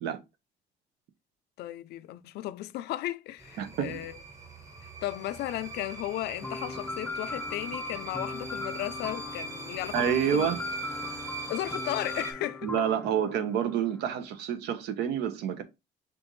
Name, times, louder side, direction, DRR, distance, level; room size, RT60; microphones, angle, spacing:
voice 1, 1.6-4.2 5.0-10.5 11.5-12.7, left 14 dB, 75° left, 0.4 m, -35 dB
sound 1, 3.4-12.3, right 3 dB, 20° right, 0.9 m, -41 dB
voice 2, 3.6-4.0 9.9-10.6 12.6-15.6, right 9 dB, 80° right, 0.8 m, -28 dB
sound 2, 6.4-14.3, left 3 dB, 5° left, 0.3 m, -39 dB
6.0 x 2.5 x 3.1 m
cardioid pair, 110°, 17 cm